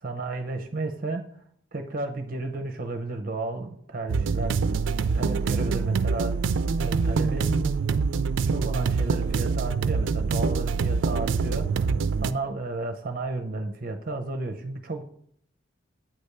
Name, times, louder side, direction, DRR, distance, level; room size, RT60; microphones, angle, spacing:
voice 1, 0.0-1.4 1.7-7.6 8.5-12.0 12.2-15.0, right 2 dB, 45° right, 5 dB, 0.7 m, -33 dB
sound 1, 4.1-12.3, right 5 dB, 80° right, 0.4 m, -25 dB
8.8 x 3.4 x 6.6 m, 0.65 s
head